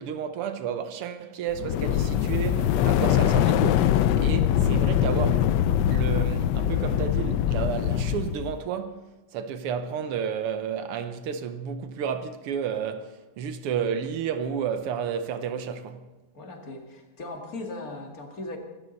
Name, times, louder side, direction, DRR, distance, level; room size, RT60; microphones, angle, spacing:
voice 1, 0.0-5.6 5.9-16.1, right 7 dB, 85° right, 1.9 m, -31 dB
sound 1, 1.5-8.5, left 10 dB, 70° left, 1.1 m, -23 dB
voice 2, 16.3-18.6, left 2 dB, 40° left, 2.5 m, -38 dB
26.0 x 12.5 x 4.1 m
omnidirectional pair, 2.4 m